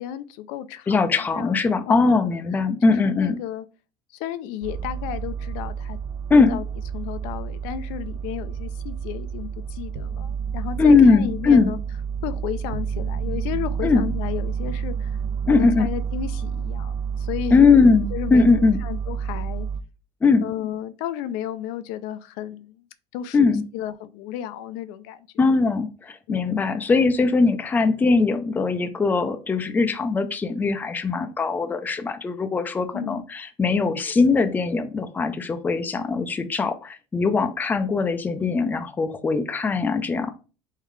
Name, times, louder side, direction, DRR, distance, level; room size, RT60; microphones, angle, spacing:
voice 1, 0.0-1.5 1.9-2.3 2.9-3.7 4.1-6.0 6.5-6.6 6.9-11.8 12.2-15.2 15.5-17.6 18.1-19.7 20.4-22.8 23.1-25.3 26.3-26.7 31.2-31.3 32.9-33.3, left 11 dB, 70° left, 0.4 m, -33 dB
voice 2, 0.9-3.4 6.3-6.6 10.8-11.7 13.8-14.0 15.5-15.9 17.5-18.8 20.2-20.5 23.3-23.6 25.4-40.3, left 4 dB, 10° left, 0.4 m, -20 dB
sound 1, 4.6-19.8, right 7 dB, 60° right, 0.4 m, -29 dB
3.6 x 3.6 x 3.2 m
cardioid pair, 140°, 14 cm